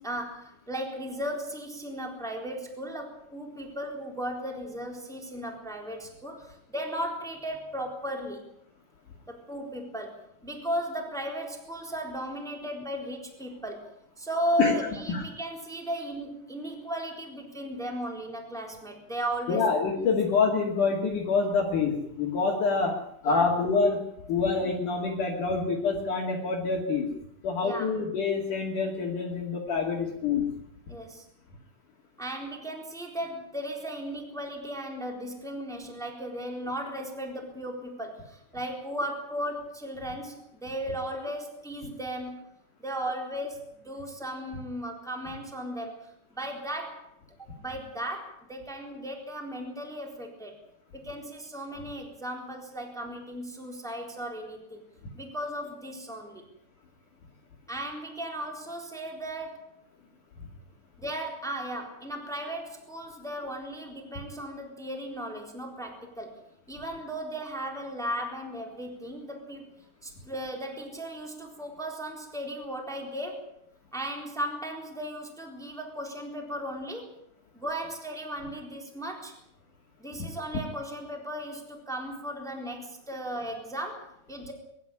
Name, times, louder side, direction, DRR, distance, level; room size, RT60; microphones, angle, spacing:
voice 1, 0.0-8.4 9.3-13.9 14.2-19.7 19.9-20.1 23.2-23.4 27.6-27.9 30.9-31.2 32.2-42.5 42.8-47.1 47.4-50.6 50.9-54.8 55.1-56.5 57.7-59.8 61.0-66.4 66.7-69.7 70.0-73.5 73.9-77.1 77.5-79.3 80.0-84.5, right 1 dB, ahead, 3 dB, 3.2 m, -36 dB
voice 2, 19.5-23.0 23.2-24.0 24.3-27.1 27.4-30.5, left 4 dB, 55° left, 0 dB, 3.6 m, -26 dB
23.0 x 12.5 x 10.0 m, 0.76 s
omnidirectional pair, 4.8 m